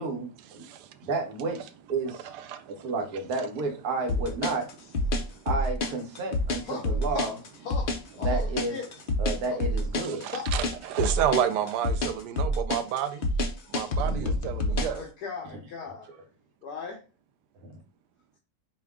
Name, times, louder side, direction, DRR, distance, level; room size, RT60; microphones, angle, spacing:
voice 1, 0.0-0.6 1.0-2.3 2.8-4.7 5.4-7.4 8.2-8.8 9.2-10.3 14.0-14.3 17.6-17.8, right 3 dB, 70° right, 1.4 m, -31 dB
voice 2, 0.5-1.1 2.1-2.9 5.1-5.5 10.0-13.3 13.7-15.0, right 10 dB, 85° right, 1.2 m, -31 dB
sound 1, 4.1-15.0, left 1 dB, 65° left, 0.5 m, -27 dB
voice 3, 6.6-7.3 7.6-8.9 10.3-10.5 14.7-16.1 16.6-17.0, left 5 dB, 80° left, 1.3 m, -38 dB
5.0 x 2.3 x 3.5 m
omnidirectional pair, 1.7 m